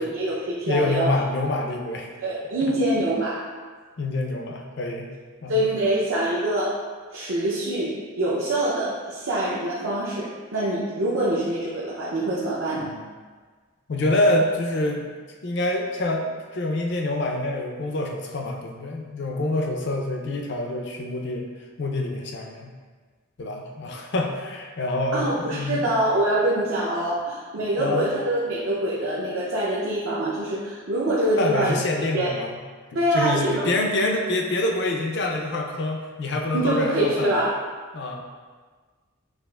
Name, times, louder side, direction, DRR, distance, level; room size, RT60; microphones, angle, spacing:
voice 1, 0.0-1.2 2.2-3.4 5.5-6.8 7.1-12.9 25.1-31.7 32.1-32.4 32.9-33.7 36.5-37.6, right 1 dB, 65° right, -7 dB, 0.6 m, -25 dB
voice 2, 0.7-2.1 4.0-5.1 5.4-5.6 12.8-13.0 13.9-15.0 15.4-16.3 16.5-21.5 21.8-22.7 23.4-25.9 27.8-28.1 31.4-32.5 33.1-37.3 37.9-38.2, left 2 dB, 50° left, 1 dB, 0.5 m, -26 dB
6.5 x 2.5 x 2.3 m, 1.5 s
head